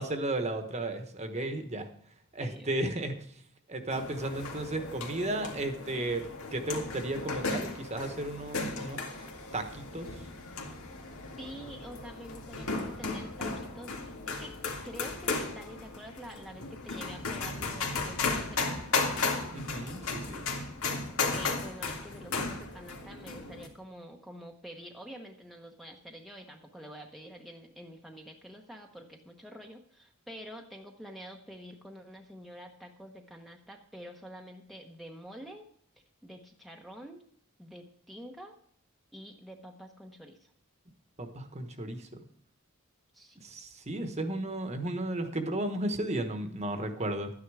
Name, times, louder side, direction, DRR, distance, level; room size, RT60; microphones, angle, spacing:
voice 1, 0.0-1.9 2.3-3.2 3.7-9.3 9.5-10.1 19.5-20.4 41.2-42.2 43.4-47.3, right 1 dB, 30° right, 7 dB, 1.2 m, -34 dB
voice 2, 2.4-2.7 11.4-14.6 14.8-19.1 21.1-35.6 36.2-37.2 37.6-38.5 39.1-40.5 43.1-43.4, equal, ahead, 1 dB, 0.9 m, -47 dB
sound 1, 3.9-23.7, left 3 dB, 80° left, 2.1 m, -35 dB
12.5 x 9.8 x 4.8 m, 0.62 s
head